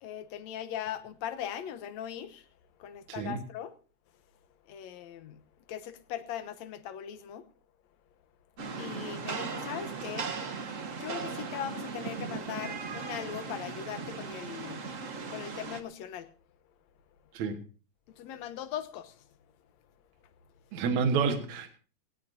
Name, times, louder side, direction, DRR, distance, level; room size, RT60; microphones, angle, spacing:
voice 1, 0.0-2.4 2.8-3.7 4.7-5.4 5.7-7.4 8.8-10.3 11.0-14.8 15.3-16.3 18.2-19.2, left 10 dB, 70° left, 2.2 m, -39 dB
voice 2, 3.1-3.4 17.3-17.6 20.7-21.7, right 5 dB, 75° right, 2.8 m, -29 dB
Rain, 8.6-15.8, right 5 dB, 50° right, 0.9 m, -38 dB
18.5 x 18.0 x 2.7 m
omnidirectional pair, 3.3 m